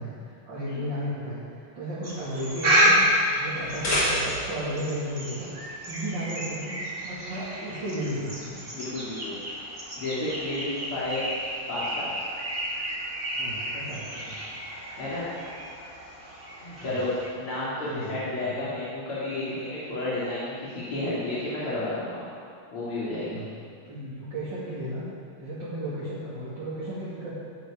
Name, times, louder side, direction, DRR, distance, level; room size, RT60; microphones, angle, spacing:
voice 1, 0.0-3.0 3.3-5.5 5.8-6.8 7.0-8.7 13.3-14.5 16.8-17.0 17.8-18.7 23.3-23.5 23.8-25.0 25.4-27.3, right 1 dB, 55° right, -11 dB, 3.2 m, -34 dB
sound 1, 2.0-17.3, equal, 25° right, 2.6 m, -30 dB
sound 2, 3.5-4.7, left 1 dB, 50° left, 3.7 m, -27 dB
voice 2, 8.7-9.4 10.0-11.2 11.7-12.2 15.0-15.3 16.5-17.1 17.4-22.2 22.7-23.4, left 2 dB, 80° left, -10 dB, 3.9 m, -31 dB
16.5 x 9.9 x 5.1 m, 2.3 s
omnidirectional pair, 2.4 m